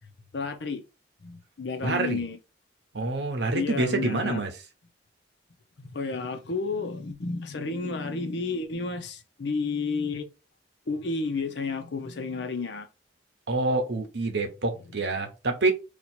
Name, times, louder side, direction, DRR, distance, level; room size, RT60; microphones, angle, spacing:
voice 1, 0.3-0.8 1.2-2.4 3.5-4.4 5.8-10.3 10.9-12.9, left 4 dB, 75° left, 0.7 m, -31 dB
voice 2, 1.8-2.3 2.9-4.5 13.5-15.7, right 3 dB, 70° right, 0.9 m, -27 dB
2.9 x 2.4 x 4.2 m
head